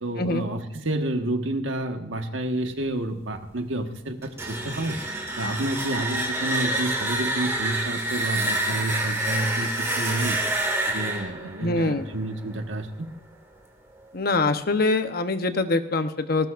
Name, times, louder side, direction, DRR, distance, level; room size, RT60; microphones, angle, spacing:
voice 1, 0.0-5.0 5.4-10.4 10.9-13.1, right 1 dB, 85° right, 5 dB, 1.5 m, -29 dB
sound 1, 4.2-13.0, right 1 dB, 15° right, 2.3 m, -28 dB
voice 2, 11.4-12.1 14.1-16.5, left 3 dB, 50° left, 8 dB, 0.9 m, -24 dB
19.0 x 18.5 x 2.5 m, 0.88 s
head